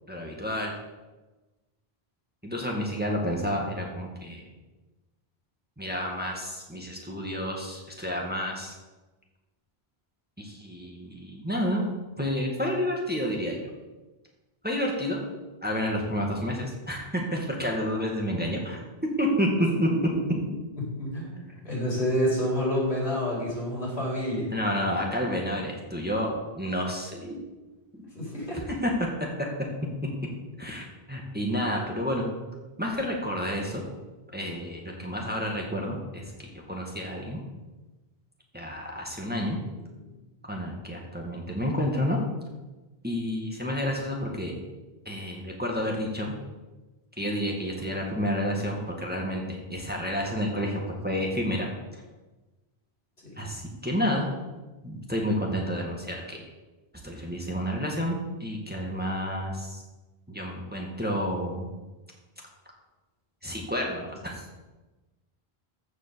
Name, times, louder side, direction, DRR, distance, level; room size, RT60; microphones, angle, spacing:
voice 1, 0.1-0.7 2.4-4.4 5.8-8.7 10.4-11.8 12.2-13.6 14.6-15.2 15.6-18.8 19.2-19.5 19.8-19.9 24.5-27.4 27.9-28.0 28.8-28.9 30.6-32.3 32.8-33.8 34.3-36.3 36.7-37.4 38.5-39.6 40.4-42.2 43.0-44.5 45.1-46.3 47.2-51.7 51.9-52.0 53.4-54.3 54.8-56.4 57.0-59.8 60.3-61.7 63.4-64.5, equal, 10° right, -1 dB, 1.9 m, -30 dB
voice 2, 19.6-20.0 21.0-24.5 28.1-28.6, equal, 80° left, -4 dB, 4.8 m, -28 dB
14.5 x 5.5 x 6.9 m, 1.2 s
omnidirectional pair, 1.1 m